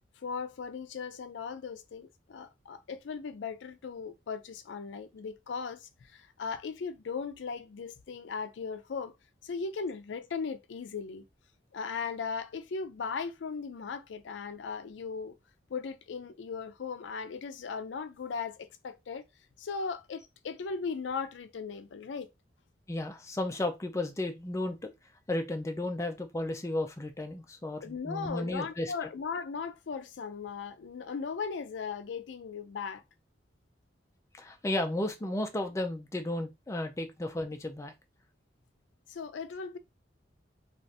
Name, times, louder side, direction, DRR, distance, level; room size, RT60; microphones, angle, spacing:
voice 1, 0.2-9.1 9.4-11.2 11.7-15.4 15.7-19.2 19.6-22.3 27.8-33.0 39.1-39.8, left 5 dB, 80° left, 0.4 m, -38 dB
voice 2, 22.9-24.8 25.3-28.9 34.3-37.9, left 1 dB, 15° left, 0.4 m, -33 dB
3.3 x 2.4 x 2.7 m
head